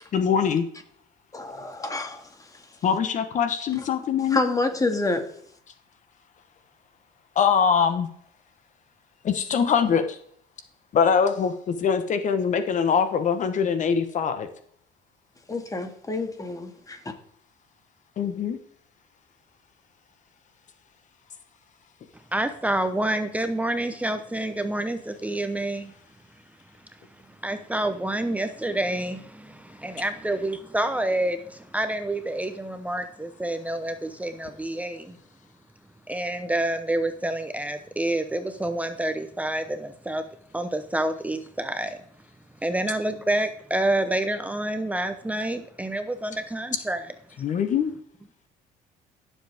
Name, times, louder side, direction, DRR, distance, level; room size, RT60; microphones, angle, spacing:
voice 1, 0.1-0.7 2.8-4.4 7.3-8.1 9.2-10.2 10.9-14.5 18.2-18.6 47.4-47.9, left 7 dB, 50° left, 1.1 m, -23 dB
voice 2, 1.3-2.2 4.3-5.3 15.5-17.1, left 3 dB, 20° left, 2.0 m, -27 dB
voice 3, 22.3-25.9 27.4-35.2 36.1-40.2 40.5-42.0 42.6-47.0, right 1 dB, 10° right, 0.9 m, -28 dB
15.5 x 7.3 x 3.5 m
cardioid pair, 90°, 16 cm